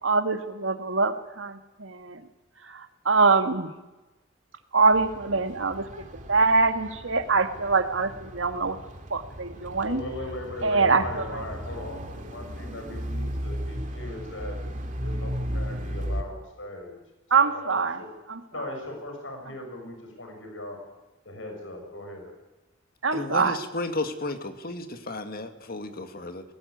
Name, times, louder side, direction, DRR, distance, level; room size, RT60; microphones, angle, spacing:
voice 1, 0.0-2.2 2.7-3.7 4.7-5.9 6.3-8.8 9.1-10.0 10.6-11.4 17.3-18.0 18.3-18.4 23.0-23.6, right 4 dB, 80° right, 8 dB, 2.0 m, -24 dB
sound 1, 4.9-16.2, equal, 40° right, 2.7 m, -35 dB
voice 2, 9.8-14.6 15.0-16.9 17.4-18.2 18.5-20.8 21.2-22.3, left 1 dB, 80° left, 3 dB, 6.6 m, -39 dB
voice 3, 23.1-26.4, left 2 dB, 50° left, 8 dB, 2.0 m, -33 dB
21.0 x 18.0 x 9.4 m, 1.1 s
head